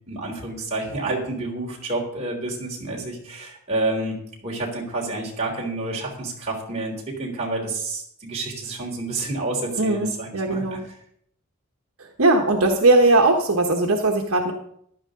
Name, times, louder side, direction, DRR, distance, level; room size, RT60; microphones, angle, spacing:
voice 1, 0.1-10.6, right 2 dB, 30° right, -2 dB, 3.4 m, -29 dB
voice 2, 9.8-10.8 12.0-14.5, right 2 dB, 70° right, 2 dB, 1.2 m, -19 dB
15.0 x 11.0 x 3.8 m, 0.68 s
head